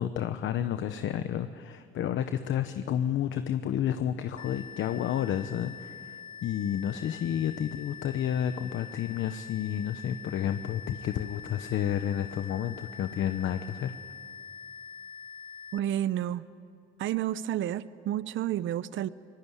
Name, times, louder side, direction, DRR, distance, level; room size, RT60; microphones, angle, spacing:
voice 1, 0.0-13.9, left 10 dB, 75° left, 10 dB, 1.0 m, -31 dB
sound 1, 4.4-15.8, left 6 dB, 25° left, 1.1 m, -45 dB
voice 2, 15.7-16.5 17.0-19.1, right 12 dB, 75° right, 16 dB, 0.7 m, -30 dB
25.0 x 20.5 x 9.8 m, 2.5 s
cardioid pair, 90°, 20 cm